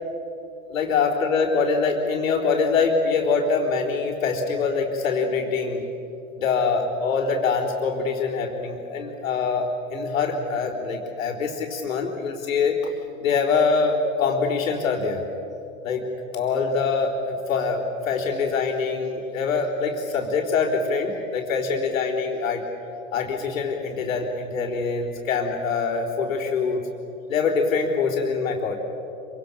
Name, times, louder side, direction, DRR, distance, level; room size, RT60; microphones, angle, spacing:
voice 1, 0.7-5.9 6.4-12.9 13.2-15.2 15.8-16.1 16.3-22.6 23.1-26.8 27.3-28.8, left 5 dB, 75° left, -7 dB, 4.0 m, -24 dB
26.5 x 25.5 x 6.8 m, 3.0 s
hypercardioid pair, 100°, 41 cm